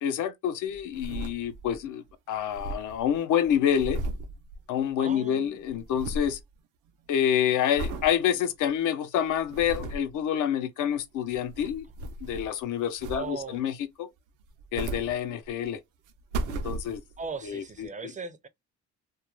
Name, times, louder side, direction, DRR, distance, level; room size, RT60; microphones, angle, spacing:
voice 1, 0.0-4.0 4.7-6.4 7.1-11.9 12.2-14.1 14.7-15.8 16.5-17.0 17.4-17.9, left 9 dB, 80° left, 0.6 m, -27 dB
sound 1, 0.7-1.8 2.1-2.2 2.4-5.2 5.4-6.4 6.9-7.2 7.8-8.1 8.7-8.8 9.3-10.1 11.1-12.6 13.0-13.6 14.4-15.7 16.1-17.3 17.8-17.9, right 2 dB, 90° right, 0.5 m, -36 dB
voice 2, 5.0-5.6 13.1-13.6 17.2-18.5, right 4 dB, 25° right, 0.4 m, -38 dB
2.4 x 2.1 x 3.0 m
cardioid pair, 90°, 30 cm